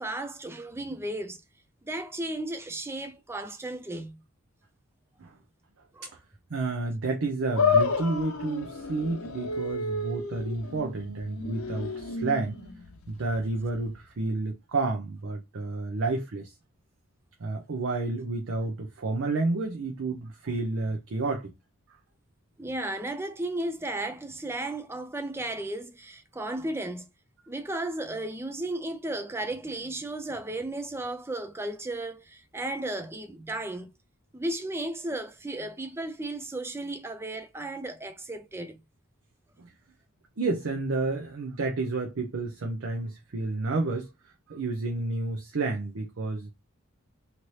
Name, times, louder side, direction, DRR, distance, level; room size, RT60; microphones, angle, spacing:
voice 1, 0.0-1.4 1.8-4.2 5.9-6.1 22.6-27.1 27.5-33.9 34.3-38.8, right 1 dB, 10° right, 0.4 m, -34 dB
voice 2, 6.5-12.6 13.1-16.5 17.4-21.5 40.4-46.5, right 3 dB, 60° right, 0.6 m, -30 dB
sound 1, 7.6-14.0, left 4 dB, 65° left, 0.7 m, -30 dB
2.9 x 2.6 x 3.1 m
head